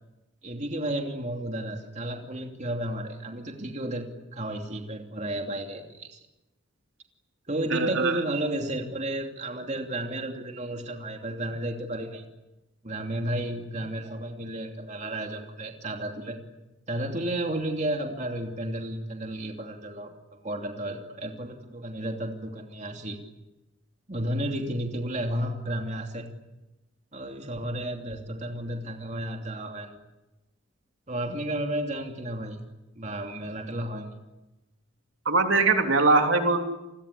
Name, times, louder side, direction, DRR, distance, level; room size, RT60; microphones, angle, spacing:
voice 1, 0.4-4.1 4.3-6.2 7.5-12.3 12.8-16.4 16.9-20.1 20.4-23.2 24.1-26.3 27.1-29.9 31.1-32.6 33.0-34.1, right 1 dB, 35° right, 3 dB, 2.9 m, -32 dB
voice 2, 7.7-8.2 35.2-36.6, right 3 dB, 75° right, 4 dB, 3.3 m, -22 dB
30.0 x 21.0 x 8.4 m, 1.0 s
head